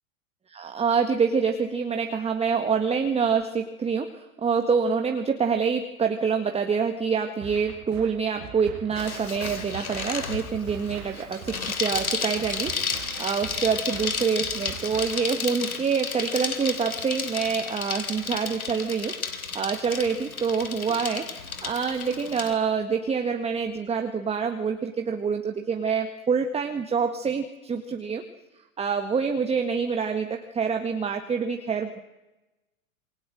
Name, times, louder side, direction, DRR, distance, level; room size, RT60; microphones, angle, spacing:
voice 1, 0.5-28.2 28.8-32.0, right 6 dB, 15° right, 5 dB, 1.7 m, -26 dB
sound 1, 7.4-15.4, right 11 dB, 40° right, 2.5 m, -43 dB
Bicycle, 9.0-22.5, left 5 dB, 80° left, 3.3 m, -32 dB
27.5 x 22.0 x 7.7 m, 1.0 s
figure-of-eight pair, 100°, 42 cm